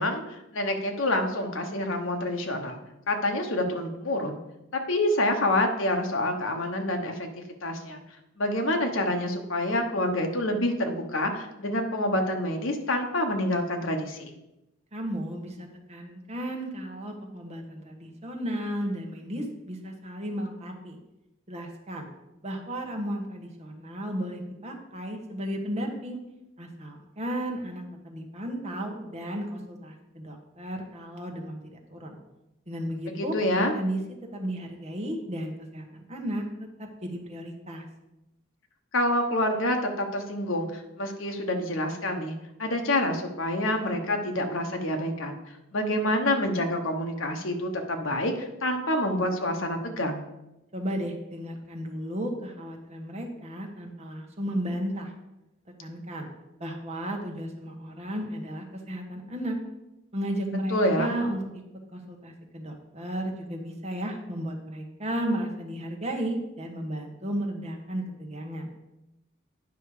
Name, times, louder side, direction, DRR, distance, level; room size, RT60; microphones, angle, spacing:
voice 1, 0.0-2.8 3.1-4.4 4.9-8.0 8.4-14.3 33.2-33.7 38.9-42.3 42.6-45.3 45.7-50.2 60.7-61.1, left 1 dB, 70° left, 4 dB, 1.2 m, -27 dB
voice 2, 14.9-21.0 21.5-22.1 22.4-26.2 26.6-31.6 31.9-32.2 32.7-33.3 33.7-34.0 34.3-36.4 36.8-37.8 50.7-55.1 55.8-56.3 56.6-59.6 60.1-61.4 61.9-68.7, equal, 30° right, 2 dB, 1.4 m, -34 dB
9.5 x 5.5 x 4.9 m, 0.93 s
head